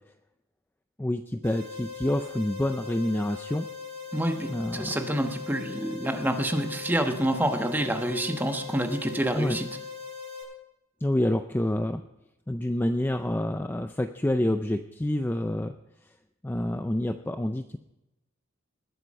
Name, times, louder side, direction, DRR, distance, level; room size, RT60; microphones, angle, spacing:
voice 1, 1.0-3.7 4.5-5.0 9.3-9.6 11.0-12.0 12.5-15.7 16.4-17.8, left 1 dB, 10° left, 8 dB, 0.4 m, -28 dB
sound 1, 1.4-10.4, left 5 dB, 55° right, 5.3 m, -40 dB
voice 2, 4.1-9.7, right 1 dB, 10° right, 5 dB, 1.1 m, -27 dB
20.5 x 7.9 x 5.4 m, 0.92 s
head